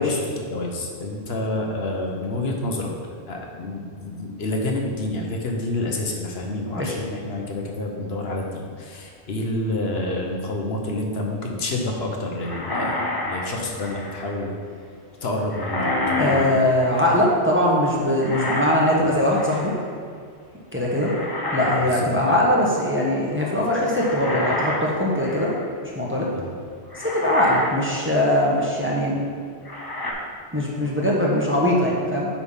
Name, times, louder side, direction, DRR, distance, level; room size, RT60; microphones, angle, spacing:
voice 1, 0.0-2.9 3.3-14.5 15.2-16.6 21.8-22.1 26.4-26.5, left 2 dB, 65° left, 0 dB, 1.1 m, -28 dB
sound 1, 12.4-14.3 15.5-17.3 18.2-19.0 19.3-19.8 21.0-21.9 22.2-22.4 23.9-25.7 26.4-26.5 26.9-27.8 28.2-28.4 29.6-30.1, left 2 dB, 25° left, 0.7 m, -29 dB
voice 2, 16.2-19.7 20.7-21.1 21.5-25.5 25.9-26.3 27.0-29.2 30.5-32.3, left 1 dB, 10° right, -4 dB, 1.0 m, -21 dB
8.6 x 3.5 x 5.6 m, 2.2 s
omnidirectional pair, 1.1 m